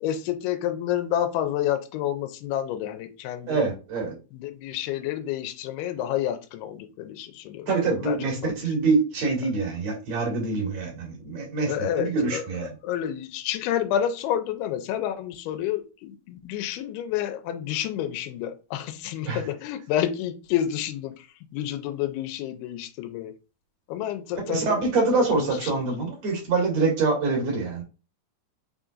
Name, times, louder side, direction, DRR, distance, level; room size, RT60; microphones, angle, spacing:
voice 1, 0.0-3.6 4.3-8.7 9.4-9.5 11.7-21.3 21.5-23.3 23.9-24.8 25.2-25.8, left 11 dB, 90° left, 2.6 m, -29 dB
voice 2, 3.5-4.1 7.7-12.7 19.3-19.4 24.5-27.8, right 3 dB, 50° right, 2.7 m, -25 dB
5.7 x 3.8 x 2.4 m
omnidirectional pair, 4.5 m